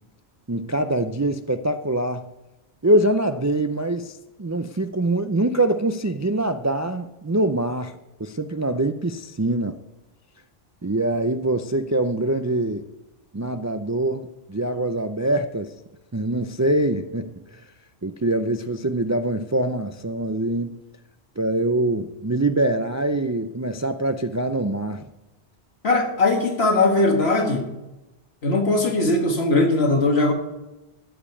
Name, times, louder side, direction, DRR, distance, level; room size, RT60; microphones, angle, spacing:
voice 1, 0.5-2.3 2.8-9.8 10.8-12.8 13.3-15.7 16.1-17.6 18.0-20.8 21.4-25.1, right 1 dB, 30° right, 0.3 m, -24 dB
voice 2, 25.8-27.7 28.4-30.3, left 2 dB, 70° left, 1.9 m, -20 dB
14.0 x 5.2 x 8.5 m
omnidirectional pair, 1.1 m